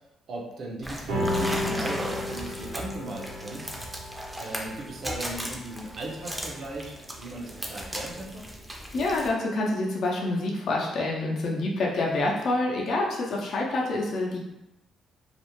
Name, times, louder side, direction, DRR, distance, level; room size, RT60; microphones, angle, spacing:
voice 1, 0.3-3.7 4.4-8.5, right 2 dB, 55° right, -1 dB, 0.5 m, -37 dB
sound 1, 0.8-9.3, equal, 5° right, 0.4 m, -37 dB
sound 2, 1.1-7.8, left 1 dB, 90° right, 0.8 m, -34 dB
voice 2, 8.9-14.4, left 2 dB, 65° left, -3 dB, 0.5 m, -27 dB
2.4 x 2.0 x 2.9 m, 0.91 s
cardioid pair, 90°, 0 cm